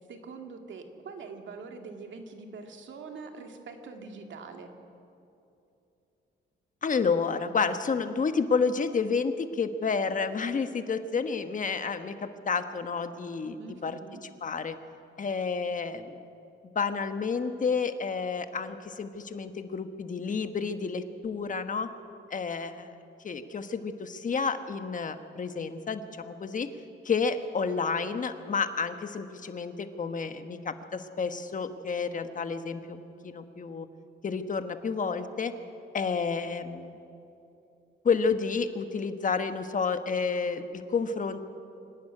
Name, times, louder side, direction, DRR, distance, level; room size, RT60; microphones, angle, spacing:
voice 1, 0.1-4.7 13.6-14.2, right 4 dB, 75° right, 4 dB, 2.4 m, -44 dB
voice 2, 6.8-14.0 14.4-14.8 15.2-16.1 16.7-21.9 22.3-22.9 23.2-26.7 27.0-33.9 34.2-35.5 35.9-36.9 38.0-41.4, left 5 dB, 40° left, 9 dB, 1.3 m, -30 dB
25.5 x 11.5 x 9.9 m, 2.8 s
cardioid pair, 105°, 20 cm